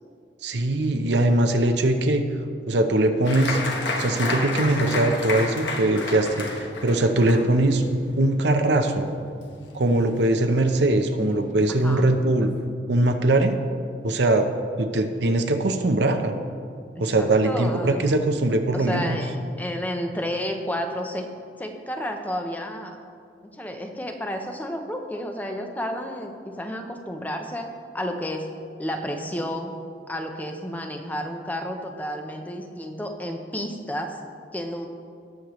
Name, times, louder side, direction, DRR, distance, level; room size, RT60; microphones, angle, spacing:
voice 1, 0.4-2.2 2.7-3.6 4.0-7.9 8.2-9.1 9.7-12.5 12.9-13.5 14.0-14.5 14.8-16.3 17.0-19.2, right 2 dB, 75° right, 6 dB, 0.7 m, -21 dB
Applause, 3.2-10.3 10.6-11.3 11.7-11.8 12.1-12.6, left 2 dB, 80° left, 1.2 m, -31 dB
voice 2, 11.6-12.1 17.0-18.1 18.7-21.3 21.6-23.0 23.6-27.7 27.9-28.5 28.8-29.8 30.1-34.2 34.5-34.9, equal, 10° left, 4 dB, 0.7 m, -31 dB
18.5 x 6.5 x 3.1 m, 2.3 s
head